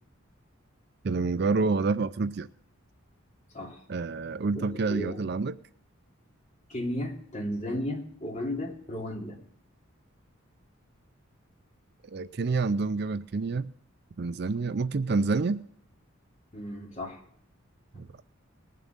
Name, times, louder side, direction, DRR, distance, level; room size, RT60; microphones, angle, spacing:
voice 1, 1.0-2.5 3.9-5.6 12.1-13.7 14.2-15.6 18.0-18.1, right 4 dB, 50° right, 0.4 m, -28 dB
voice 2, 4.5-5.2 6.7-9.4 16.5-17.2, left 1 dB, 35° left, 3.0 m, -34 dB
20.0 x 7.5 x 5.3 m
head